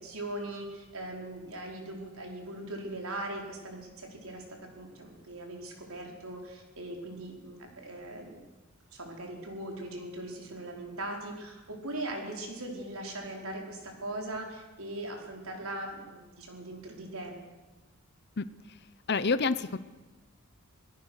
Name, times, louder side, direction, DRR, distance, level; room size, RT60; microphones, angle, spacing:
voice 1, 0.0-4.4 4.8-8.4 8.9-17.4, right 1 dB, 65° right, 1 dB, 5.0 m, -40 dB
voice 2, 19.1-19.8, left 4 dB, 50° left, 13 dB, 0.8 m, -27 dB
27.5 x 18.0 x 6.5 m, 1.1 s
head